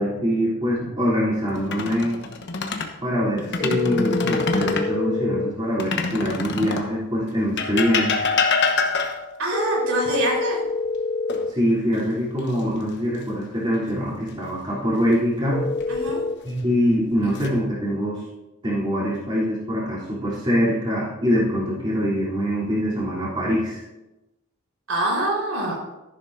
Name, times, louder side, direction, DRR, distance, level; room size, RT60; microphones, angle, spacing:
voice 1, 0.0-2.2 3.0-8.3 11.5-15.6 16.4-18.2 18.6-23.8, equal, 25° right, -8 dB, 3.3 m, -24 dB
sound 1, 1.6-2.9 3.4-4.9 5.8-6.9 7.6-9.4 11.3-12.0 12.4-12.6 15.5-16.1 16.8-17.5, left 4 dB, 55° left, 1.1 m, -25 dB
sound 2, 3.6-5.5 9.5-11.5 15.5-16.4, left 3 dB, 35° left, 0.4 m, -26 dB
voice 2, 9.4-10.6 15.9-16.2 24.9-25.7, right 1 dB, 75° right, -3 dB, 4.3 m, -24 dB
13.5 x 11.0 x 2.7 m, 0.99 s
head